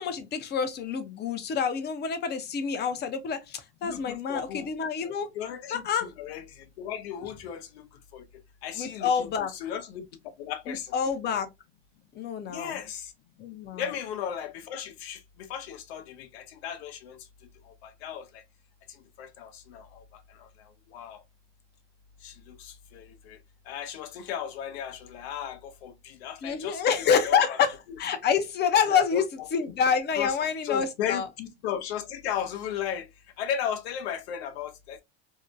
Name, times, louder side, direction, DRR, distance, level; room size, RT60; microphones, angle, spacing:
voice 1, 0.0-5.3 5.7-6.1 8.8-9.5 10.7-11.5 12.1-12.8 13.4-13.8 26.4-29.2 29.5-31.3, left 7 dB, 30° left, 0.6 m, -27 dB
voice 2, 3.8-4.7 5.3-8.3 8.6-10.1 10.4-10.9 12.5-13.1 13.7-17.2 17.6-18.4 18.9-21.2 22.2-23.4 23.7-27.6 28.9-29.5 30.2-30.4 30.6-33.1 33.4-35.0, left 9 dB, 75° left, 0.7 m, -36 dB
2.7 x 2.1 x 2.5 m
hypercardioid pair, 100°, 32 cm